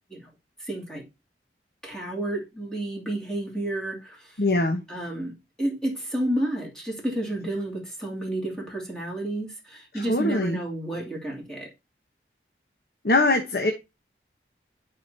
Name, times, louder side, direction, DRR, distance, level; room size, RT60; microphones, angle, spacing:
voice 1, 0.6-1.0 1.8-4.4 4.9-11.7, right 1 dB, 5° left, 2.6 m, -31 dB
voice 2, 4.4-4.8 9.9-10.6 13.0-13.7, left 2 dB, 60° left, 1.0 m, -22 dB
11.0 x 4.9 x 2.7 m
head